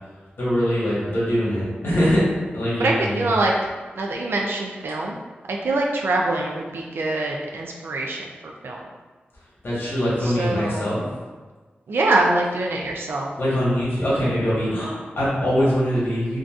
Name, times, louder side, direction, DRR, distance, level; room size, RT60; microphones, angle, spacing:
voice 1, 0.4-2.2 2.5-3.2 9.6-11.0 13.4-16.4, equal, 75° left, -8 dB, 1.4 m, -22 dB
voice 2, 2.8-3.5 4.0-5.2 5.5-8.8 10.2-10.9 11.9-13.3, right 2 dB, 75° right, -1 dB, 0.3 m, -24 dB
3.8 x 2.3 x 2.4 m, 1.3 s
wide cardioid pair, 75°, 4 cm